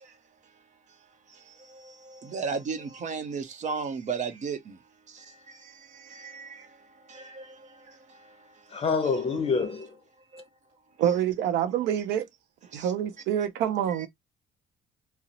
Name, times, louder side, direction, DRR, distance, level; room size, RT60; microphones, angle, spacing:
voice 1, 2.3-4.6, right 5 dB, 45° right, 0.8 m, -31 dB
voice 2, 8.7-9.9, left 5 dB, 35° left, 0.8 m, -26 dB
voice 3, 11.0-12.3 12.7-14.1, right 10 dB, 85° right, 0.5 m, -26 dB
2.8 x 2.0 x 3.9 m
cardioid pair, 110°, 17 cm